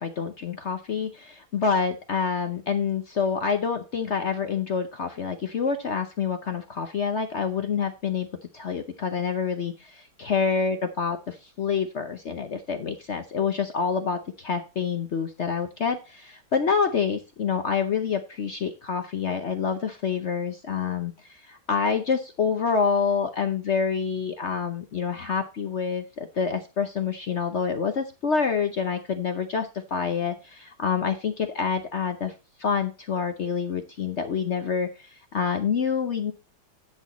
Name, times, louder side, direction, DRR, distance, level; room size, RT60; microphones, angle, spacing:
voice 1, 0.0-8.3 8.5-32.3 32.6-36.3, left 6 dB, 65° left, 7 dB, 0.7 m, -27 dB
10.0 x 6.3 x 4.1 m, 0.30 s
omnidirectional pair, 2.2 m